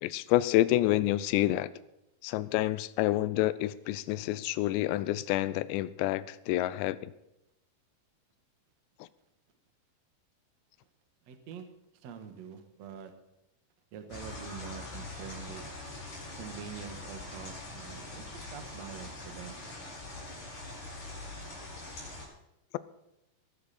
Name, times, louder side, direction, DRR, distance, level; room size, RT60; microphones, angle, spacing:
voice 1, 0.0-1.7 2.2-7.1, left 15 dB, 80° left, 16 dB, 2.8 m, -28 dB
voice 2, 11.3-11.7 12.0-13.1 13.9-15.7 16.4-18.2 18.5-19.6, right 7 dB, 60° right, 7 dB, 1.8 m, -45 dB
sound 1, 14.1-22.3, left 2 dB, 45° left, 7.6 m, -43 dB
21.5 x 12.0 x 4.3 m, 0.88 s
omnidirectional pair, 5.3 m